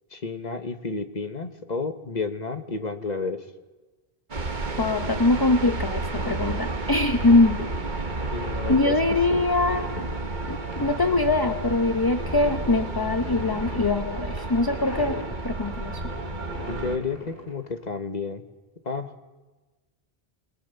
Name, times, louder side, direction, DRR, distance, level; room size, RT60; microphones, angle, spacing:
voice 1, 0.1-3.4 8.3-9.0 9.3-9.5 16.7-18.4 18.8-19.1, left 4 dB, 45° left, 8 dB, 1.4 m, -31 dB
sound 1, 4.3-17.0, right 2 dB, 50° right, 1.6 m, -31 dB
voice 2, 4.8-7.6 8.7-9.9 10.5-15.2 15.4-16.0, left 2 dB, 25° left, 8 dB, 0.8 m, -23 dB
sound 2, 6.2-17.9, left 1 dB, 60° left, 4.9 m, -40 dB
28.5 x 20.5 x 7.0 m, 1.2 s
omnidirectional pair, 1.0 m